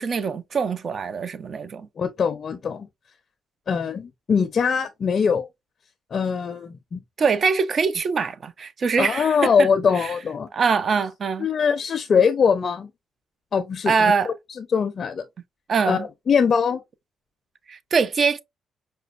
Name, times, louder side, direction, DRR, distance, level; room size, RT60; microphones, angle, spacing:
voice 1, 0.0-1.9 7.2-9.7 10.0-10.1 10.5-11.5 13.9-14.3 15.7-16.1 17.7-18.4, right 5 dB, 50° right, 0.5 m, -23 dB
voice 2, 2.0-2.9 3.7-5.5 6.1-7.0 9.0-10.5 11.4-12.9 13.5-15.2 15.8-16.8, left 6 dB, 50° left, 0.4 m, -22 dB
5.0 x 2.2 x 2.4 m
cardioid pair, 90°, 0 cm